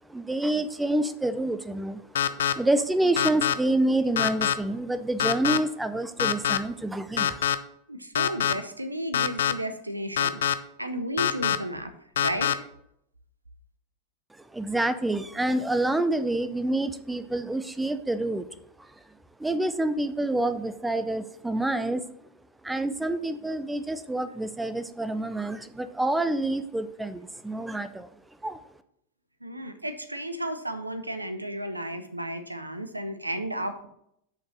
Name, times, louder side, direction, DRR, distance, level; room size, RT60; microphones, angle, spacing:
voice 1, 0.1-7.5 14.4-18.5 18.8-18.9 19.4-22.0 22.6-28.1 28.4-28.6, right 1 dB, 5° right, 11 dB, 0.5 m, -28 dB
sound 1, 2.2-2.5 3.2-3.5 4.2-4.5 5.2-5.6 6.2-6.6 7.2-7.6 8.2-8.5 9.1-9.5 10.2-10.5 11.2-11.6 12.2-12.5, left 9 dB, 60° left, 0.4 m, -23 dB
voice 2, 7.9-12.7 29.4-33.9, right 1 dB, 85° right, 9 dB, 0.7 m, -33 dB
6.4 x 5.3 x 6.1 m, 0.74 s
figure-of-eight pair, 90°, 0 cm